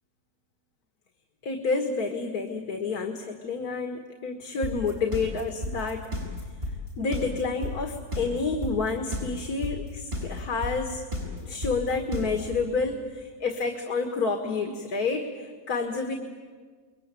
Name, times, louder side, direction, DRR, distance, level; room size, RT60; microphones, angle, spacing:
voice 1, 1.4-6.1 7.0-11.0 11.3-16.1, left 4 dB, 70° left, 4 dB, 2.1 m, -29 dB
sound 1, 4.6-12.6, equal, 35° right, 7.2 m, -32 dB
28.5 x 22.0 x 9.0 m, 1.6 s
omnidirectional pair, 1.7 m